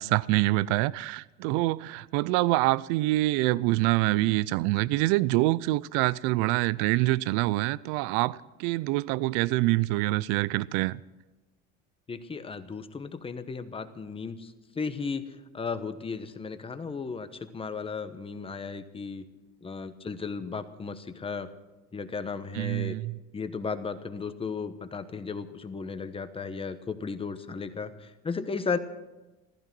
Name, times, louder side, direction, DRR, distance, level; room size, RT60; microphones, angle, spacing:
voice 1, 0.0-11.0 22.5-23.2, right 19 dB, 90° right, 0.5 m, -26 dB
voice 2, 12.1-19.2 19.6-21.5 21.9-22.9 23.3-28.8, left 5 dB, 20° left, 1.1 m, -35 dB
15.0 x 15.0 x 6.1 m
cardioid pair, 135°, 30 cm